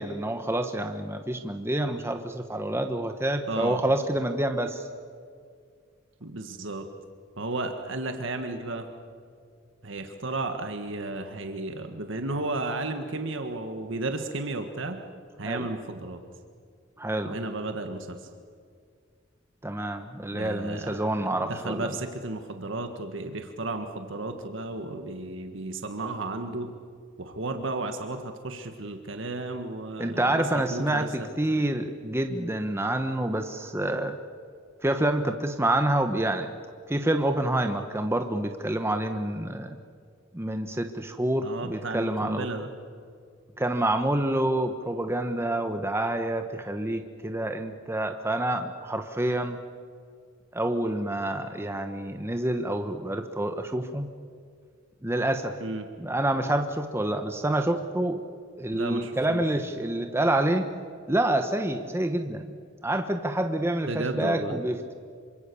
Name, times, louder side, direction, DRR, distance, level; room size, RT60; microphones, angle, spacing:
voice 1, 0.0-4.8 15.4-15.7 17.0-17.4 19.6-21.9 30.0-34.2 34.8-36.5 36.9-39.8 40.3-42.5 43.6-49.6 50.5-54.1 55.0-55.6 56.0-58.2 58.6-60.7 61.1-62.5 62.8-64.9, right 1 dB, 15° right, 6 dB, 1.1 m, -27 dB
voice 2, 3.5-3.8 6.2-6.9 7.4-8.9 9.8-15.0 15.4-16.2 17.2-18.3 20.3-26.7 27.2-31.1 31.5-31.6 41.4-42.7 55.6-55.9 58.7-59.4 63.9-64.6, right 2 dB, 70° right, 6 dB, 1.8 m, -33 dB
27.0 x 25.0 x 7.0 m, 2.2 s
head